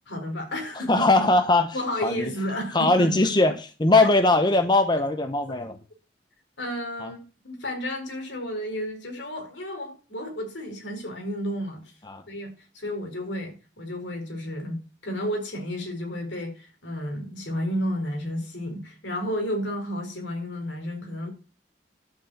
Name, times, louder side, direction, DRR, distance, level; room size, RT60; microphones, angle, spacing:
voice 1, 0.1-1.3 1.7-3.3 3.9-4.1 5.5-5.6 6.6-11.8 12.3-21.3, equal, 85° left, 4.4 m, -32 dB
voice 2, 0.9-1.8 2.0-2.3 2.7-5.8 7.0-7.1 12.1-12.2, left 2 dB, 25° left, 0.9 m, -20 dB
11.5 x 5.4 x 7.9 m
head